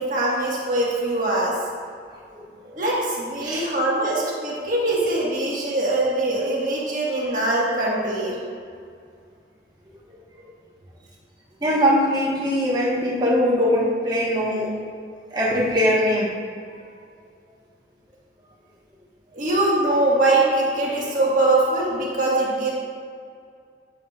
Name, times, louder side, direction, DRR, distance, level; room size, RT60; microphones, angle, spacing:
voice 1, 0.0-1.5 2.7-8.4 19.3-22.7, right 2 dB, 45° right, -5 dB, 1.6 m, -22 dB
voice 2, 2.3-2.7 3.4-3.7 10.1-10.2 11.6-14.7 15.3-16.3, equal, 20° right, -6 dB, 1.2 m, -21 dB
8.8 x 7.0 x 2.4 m, 2.2 s
head